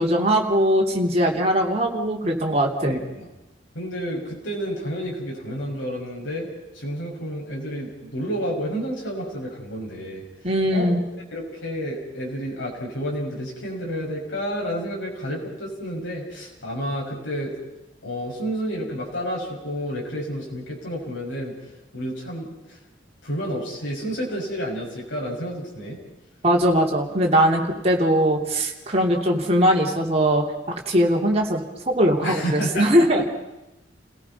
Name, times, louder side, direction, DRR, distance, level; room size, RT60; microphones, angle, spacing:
voice 1, 0.0-3.0 10.4-11.0 26.4-30.4 30.9-33.2, equal, 35° right, 0 dB, 3.0 m, -20 dB
voice 2, 2.8-3.3 3.7-10.2 10.7-17.5 18.0-21.5 21.9-22.8 23.2-26.0 32.2-33.2, equal, 85° left, -2 dB, 5.8 m, -30 dB
30.0 x 17.5 x 5.5 m, 0.97 s
head